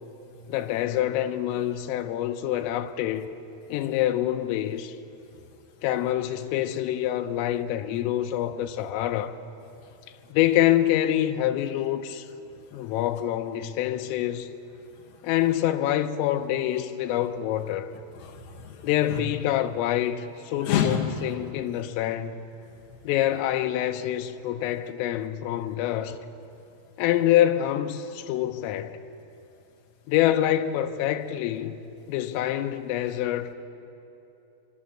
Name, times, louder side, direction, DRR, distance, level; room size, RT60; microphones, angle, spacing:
voice 1, 0.5-3.3 3.7-5.0 5.8-9.4 10.3-12.3 12.7-14.5 15.2-17.9 18.8-22.5 23.1-26.2 27.0-29.0 30.1-31.8 32.1-33.5, left 12 dB, 85° left, 3.5 m, -26 dB
voice 2, 12.5-12.9 14.9-15.3 17.1-17.2 18.1-19.2 20.6-21.0 21.4-21.5 22.7-23.0, left 8 dB, 45° left, 2.5 m, -32 dB
25.0 x 24.0 x 7.4 m
omnidirectional pair, 5.9 m